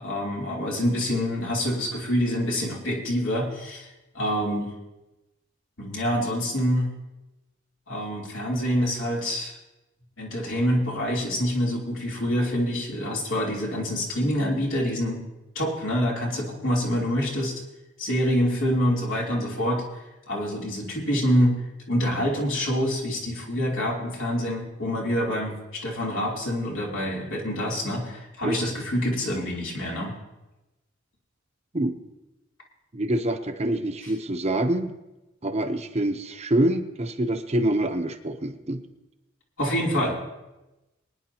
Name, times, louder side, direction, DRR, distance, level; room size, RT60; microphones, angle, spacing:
voice 1, 0.0-3.9 4.1-4.7 5.8-6.9 7.9-9.6 10.2-15.2 15.5-17.5 18.0-19.8 20.3-30.1 39.6-40.2, equal, 75° left, -3 dB, 3.2 m, -26 dB
voice 2, 32.9-34.9 35.4-38.8, right 1 dB, 30° right, 6 dB, 0.8 m, -26 dB
24.0 x 9.9 x 2.9 m, 0.99 s
head